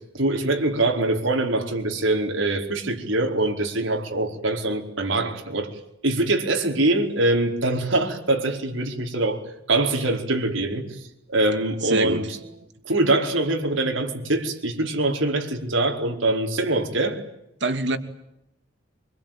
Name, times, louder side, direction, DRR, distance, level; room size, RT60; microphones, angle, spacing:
voice 1, 0.1-5.7 6.0-9.4 9.7-10.8 11.3-12.2 12.8-17.2, right 2 dB, 85° right, 4.8 m, -23 dB
voice 2, 11.8-12.7 17.6-18.0, right 2 dB, 60° right, 2.9 m, -27 dB
25.5 x 24.0 x 9.2 m
head